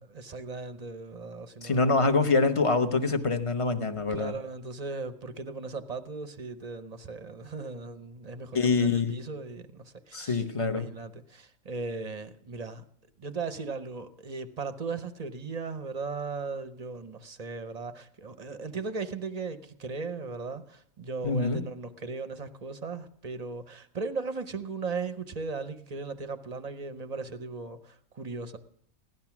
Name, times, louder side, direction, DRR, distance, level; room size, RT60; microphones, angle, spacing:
voice 1, 0.1-2.0 4.1-12.8 13.2-28.6, right 4 dB, 35° right, 0.7 m, -37 dB
voice 2, 1.6-4.3 8.5-9.0 10.1-10.9 21.2-21.6, left 3 dB, 25° left, 0.9 m, -25 dB
16.5 x 12.0 x 6.0 m
omnidirectional pair, 1.5 m